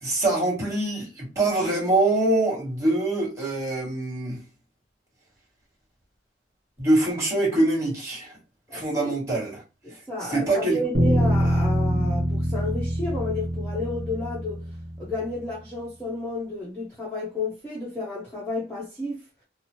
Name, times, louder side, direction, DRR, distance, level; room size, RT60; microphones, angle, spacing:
voice 1, 0.0-4.4 6.8-8.3 8.7-9.6 10.3-10.8, right 2 dB, 15° right, 1.5 m, -24 dB
voice 2, 8.7-9.1 9.8-14.6 15.0-19.2, left 2 dB, 10° left, 0.8 m, -32 dB
sound 1, 10.9-15.3, equal, 55° right, 1.2 m, -24 dB
2.8 x 2.0 x 3.0 m
head